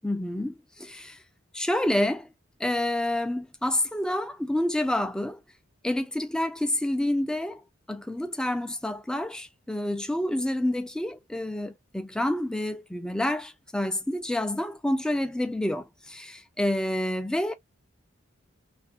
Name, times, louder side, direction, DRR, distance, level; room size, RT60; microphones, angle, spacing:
voice 1, 0.0-1.2 1.5-2.3 2.6-5.4 5.8-7.6 7.9-17.6, left 1 dB, 5° left, 0.3 m, -28 dB
2.9 x 2.5 x 2.6 m
head